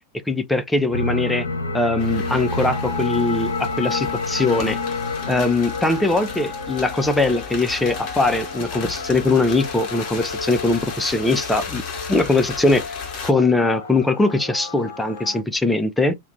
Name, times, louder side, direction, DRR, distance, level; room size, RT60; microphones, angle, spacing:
voice 1, 0.3-1.5 1.7-4.8 5.3-11.8 12.1-13.0 13.2-16.1, left 2 dB, 5° left, 0.3 m, -21 dB
sound 1, 0.9-15.4, left 3 dB, 70° left, 0.5 m, -30 dB
sound 2, 2.0-13.3, left 6 dB, 40° left, 0.9 m, -35 dB
2.4 x 2.1 x 3.1 m
figure-of-eight pair, 90°, 0 cm